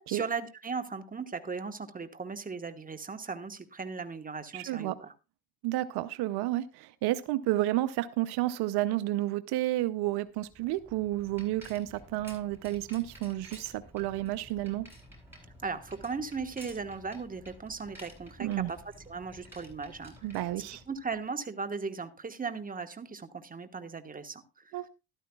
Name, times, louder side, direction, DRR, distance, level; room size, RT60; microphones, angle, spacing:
voice 1, 0.0-5.1 15.6-18.8 19.1-20.1 20.9-24.9, right 4 dB, 20° right, 9 dB, 1.3 m, -37 dB
voice 2, 4.5-5.0 5.6-14.9 18.4-18.7 20.2-20.8 24.7-24.9, right 16 dB, 75° right, 14 dB, 0.7 m, -31 dB
Bicycle, 10.4-21.2, equal, 5° right, 7.6 m, -52 dB
13.5 x 12.0 x 2.3 m, 0.28 s
supercardioid pair, 80°, 39 cm